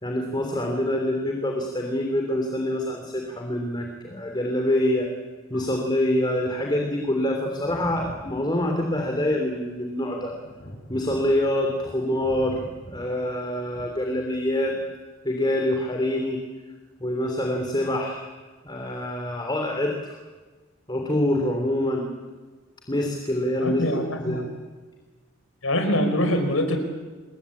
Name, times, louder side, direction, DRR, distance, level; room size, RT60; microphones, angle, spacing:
voice 1, 0.0-5.1 5.5-10.3 10.9-14.8 15.2-16.4 17.0-18.2 18.6-19.9 20.9-22.1 22.9-23.8 24.2-24.5, left 1 dB, 20° left, 2 dB, 3.3 m, -25 dB
Thunder, 7.6-15.0 16.1-16.2, equal, 40° left, 7.9 m, -45 dB
voice 2, 23.6-24.5 25.6-26.8, left 1 dB, 80° left, 6 dB, 5.1 m, -24 dB
27.0 x 23.0 x 8.6 m, 1.3 s
head